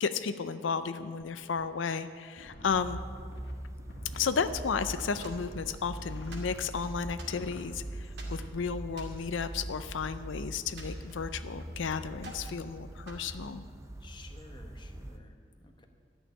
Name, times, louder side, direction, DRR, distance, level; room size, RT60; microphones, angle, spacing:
voice 1, 0.0-3.0 4.1-13.6, left 5 dB, 90° left, 11 dB, 0.5 m, -33 dB
sound 1, 1.2-1.3 1.6-1.7 2.4-4.4 5.0-5.5 5.9-6.6 7.2-7.7 8.1-8.7, left 1 dB, 70° left, 1.8 m, -49 dB
sound 2, 2.7-15.2, right 1 dB, 15° right, 0.5 m, -42 dB
sound 3, 5.2-5.9 6.3-7.7 8.2-8.4 8.9-10.2 10.8-11.8 12.2-12.6 13.1-14.1, right 2 dB, 65° right, 2.4 m, -51 dB
voice 2, 14.0-15.9, left 2 dB, 25° left, 4 dB, 1.1 m, -54 dB
13.5 x 6.6 x 9.9 m, 2.1 s
head